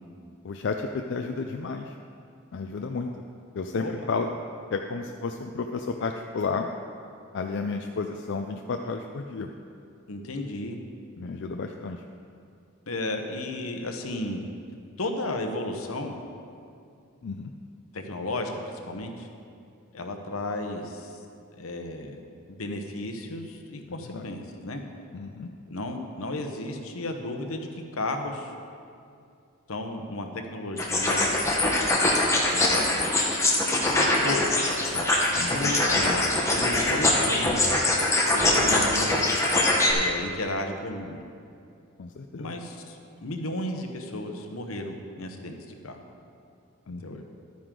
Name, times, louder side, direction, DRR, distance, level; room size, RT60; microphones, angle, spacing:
voice 1, 0.4-1.9 2.5-3.1 3.5-4.3 4.7-6.7 7.3-9.5 11.2-12.0 17.2-17.5 24.1-24.3 25.1-25.5 34.9-36.2 42.0-42.5 46.9-47.2, left 4 dB, 60° left, 4 dB, 0.4 m, -32 dB
voice 2, 3.7-4.1 10.1-10.8 12.9-14.4 15.0-16.2 17.9-19.3 19.9-21.1 21.5-22.2 22.6-24.8 25.7-27.7 27.9-28.5 29.7-31.3 32.5-33.0 34.2-34.5 35.5-37.6 38.3-39.2 39.9-41.2 42.4-45.5 45.8-46.0 47.0-47.2, left 1 dB, 75° left, 4 dB, 1.0 m, -33 dB
sound 1, 30.8-39.9, left 2 dB, 15° left, 1.2 m, -23 dB
11.5 x 9.4 x 3.8 m, 2.5 s
head